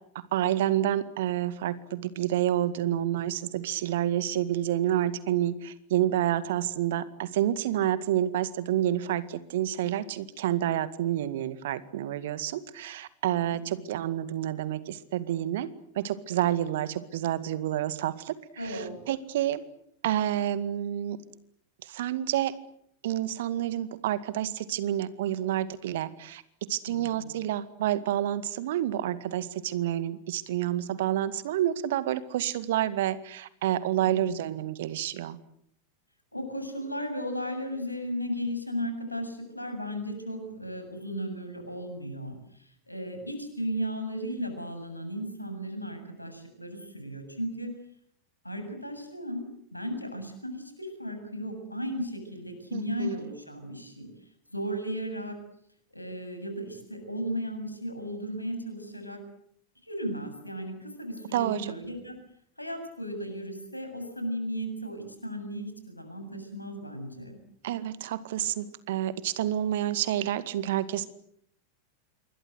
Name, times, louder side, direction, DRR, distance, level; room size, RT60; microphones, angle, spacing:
voice 1, 0.3-15.7 16.0-18.3 18.6-19.6 20.0-21.2 21.9-22.5 23.0-26.4 26.7-35.4 52.7-53.2 61.3-61.6 67.6-71.1, right 12 dB, 55° right, 14 dB, 2.0 m, -29 dB
voice 2, 18.6-18.9 26.9-27.3 36.3-47.7 48.4-49.4 49.7-54.1 54.5-55.4 55.9-59.2 59.8-62.2 62.6-67.4, equal, 85° left, 7 dB, 7.5 m, -35 dB
27.0 x 23.5 x 8.0 m, 0.69 s
figure-of-eight pair, 90°, 0 cm